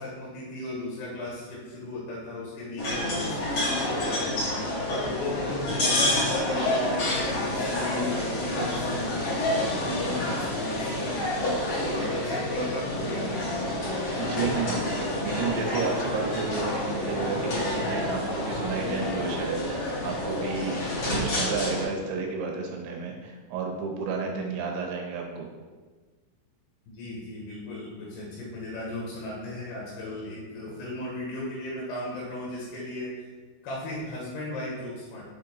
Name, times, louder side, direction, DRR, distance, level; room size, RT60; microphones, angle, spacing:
voice 1, 0.0-4.4 5.0-11.3 11.8-13.8 14.9-15.0 26.9-33.2 33.6-35.2, left 2 dB, 70° left, -4 dB, 2.9 m, -36 dB
sound 1, 2.8-21.8, left 1 dB, 45° left, 1.7 m, -28 dB
voice 2, 14.1-20.8 21.1-25.5, right 4 dB, 80° right, 1 dB, 3.3 m, -32 dB
7.0 x 5.2 x 4.2 m, 1.4 s
omnidirectional pair, 5.6 m